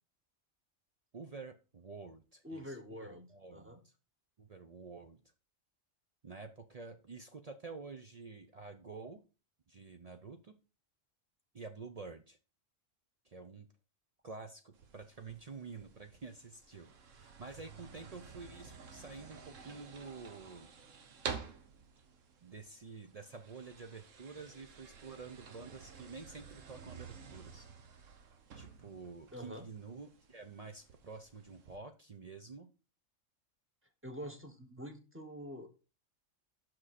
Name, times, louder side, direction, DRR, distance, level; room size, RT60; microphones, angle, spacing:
voice 1, 1.1-3.9 4.4-5.2 6.2-9.2 9.7-10.5 11.5-12.4 13.2-13.7 14.2-20.7 22.4-27.7 28.5-32.7, right 4 dB, 45° right, 7 dB, 0.5 m, -49 dB
voice 2, 2.4-3.8 29.3-29.7 34.0-35.7, equal, 10° right, 5 dB, 1.0 m, -46 dB
sound 1, 14.7-31.8, right 6 dB, 90° right, 1.3 m, -51 dB
7.7 x 6.1 x 4.1 m, 0.33 s
omnidirectional pair, 1.3 m